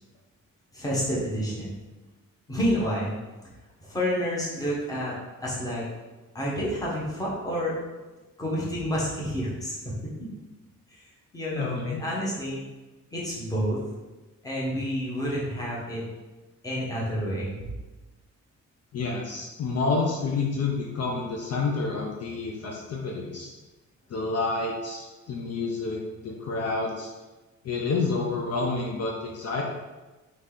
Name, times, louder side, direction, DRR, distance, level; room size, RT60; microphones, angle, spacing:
voice 1, 0.7-1.7 2.5-3.1 3.8-5.1 5.4-5.9 6.3-7.7 8.4-10.1 10.9-11.0 11.3-12.6 13.1-13.8 14.4-16.0 16.6-17.7, equal, 10° left, -6 dB, 1.0 m, -29 dB
voice 2, 11.5-12.0 18.9-23.5 24.1-27.1 27.6-29.6, left 3 dB, 55° left, -1 dB, 0.6 m, -29 dB
4.0 x 3.2 x 3.6 m, 1.2 s
wide cardioid pair, 175°, 30 cm